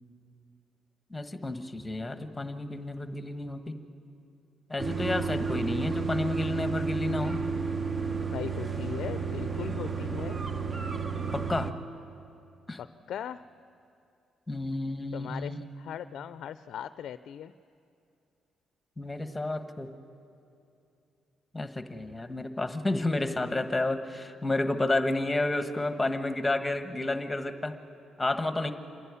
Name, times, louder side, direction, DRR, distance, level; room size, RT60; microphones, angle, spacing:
voice 1, 1.1-3.7 4.7-7.4 11.3-11.7 12.7-12.8 14.5-15.6 19.0-19.9 21.5-27.7 28.2-28.7, left 2 dB, 15° left, 8 dB, 1.3 m, -31 dB
sound 1, 4.8-11.7, right 5 dB, 30° right, 1.0 m, -32 dB
voice 2, 8.3-10.4 12.8-13.4 15.1-17.5, left 9 dB, 70° left, 13 dB, 0.4 m, -39 dB
27.0 x 11.0 x 9.7 m, 2.6 s
cardioid pair, 90°, 0 cm